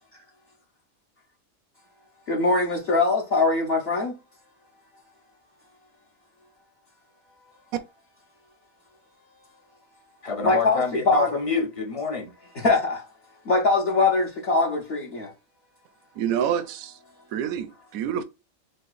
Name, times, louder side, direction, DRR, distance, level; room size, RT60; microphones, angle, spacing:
voice 1, 2.3-4.1 10.4-11.3 12.6-13.0 13.5-15.3, left 3 dB, 50° left, 1.0 m, -22 dB
voice 2, 10.2-12.3, left 5 dB, 30° left, 0.7 m, -27 dB
voice 3, 16.2-17.0 17.3-18.2, right 9 dB, 85° right, 1.0 m, -27 dB
6.4 x 2.2 x 2.4 m
omnidirectional pair, 1.4 m